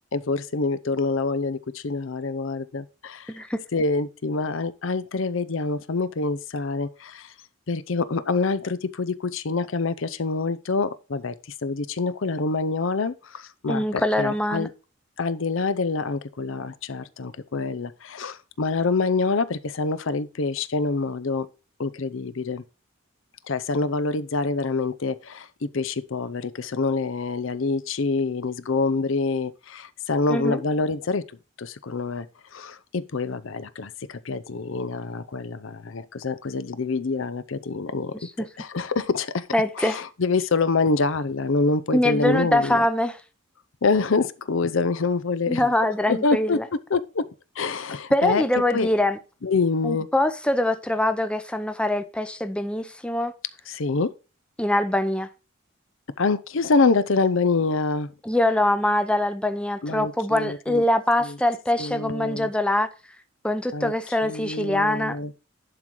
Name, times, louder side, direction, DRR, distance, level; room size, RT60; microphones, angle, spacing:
voice 1, 0.0-3.3 3.7-7.3 7.7-11.3 11.6-14.7 15.2-21.5 21.8-22.6 23.5-31.2 31.6-32.3 32.5-39.5 39.8-42.8 43.8-45.7 46.1-47.3 47.6-48.4 48.7-48.9 49.4-50.1 53.7-54.1 56.2-58.1 59.8-60.8 61.2-61.4 61.8-62.5 63.7-63.9 64.2-65.3, left 3 dB, 65° left, 0.6 m, -26 dB
voice 2, 3.3-3.6 13.7-14.7 30.3-30.6 39.5-40.0 41.9-43.2 45.5-46.6 48.1-49.2 49.8-53.3 54.6-55.3 58.2-62.9 63.4-65.2, left 1 dB, 5° left, 0.6 m, -23 dB
11.0 x 3.9 x 4.5 m
head